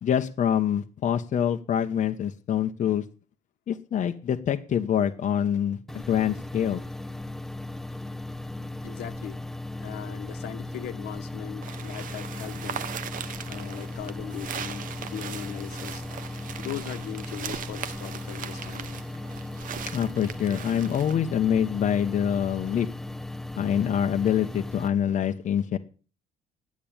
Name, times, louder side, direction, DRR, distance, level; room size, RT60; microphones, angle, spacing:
voice 1, 0.0-3.0 3.7-6.8 19.9-22.9 23.6-25.8, left 9 dB, 45° left, 1.0 m, -25 dB
sound 1, 5.9-24.9, left 2 dB, ahead, 0.8 m, -37 dB
voice 2, 8.8-9.4 9.8-12.9 13.5-16.0 16.6-19.0, left 11 dB, 75° left, 1.5 m, -39 dB
sound 2, 11.6-21.1, right 9 dB, 55° right, 1.0 m, -39 dB
10.5 x 8.6 x 8.8 m
cardioid pair, 110°, 17 cm